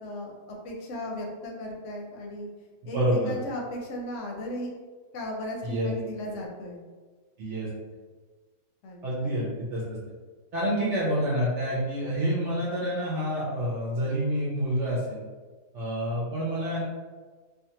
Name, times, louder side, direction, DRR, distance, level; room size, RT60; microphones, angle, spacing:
voice 1, 0.0-2.5 2.8-4.7 5.1-6.8 8.8-9.4 10.6-11.0, left 1 dB, 65° left, -1 dB, 0.8 m, -36 dB
voice 2, 2.9-3.3 5.6-5.9 7.4-7.7 9.0-10.0 10.5-15.2 15.7-16.8, equal, 60° right, -6 dB, 0.8 m, -28 dB
2.5 x 2.3 x 2.8 m, 1.4 s
omnidirectional pair, 1.6 m